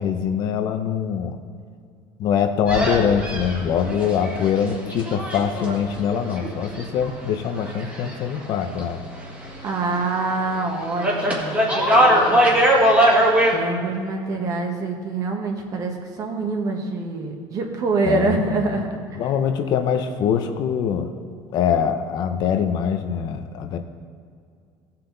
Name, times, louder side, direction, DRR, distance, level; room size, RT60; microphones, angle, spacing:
voice 1, 0.0-1.4 2.2-9.0 18.0-18.8 19.1-21.1 21.5-23.8, left 7 dB, 45° left, 7 dB, 0.7 m, -23 dB
sound 1, 2.7-8.5 8.7-10.0 10.3-13.6, equal, 15° right, 1.7 m, -21 dB
voice 2, 9.6-12.6 13.5-19.2, right 3 dB, 35° right, 3 dB, 1.3 m, -26 dB
15.5 x 5.8 x 3.9 m, 2.3 s
cardioid pair, 155°, 10 cm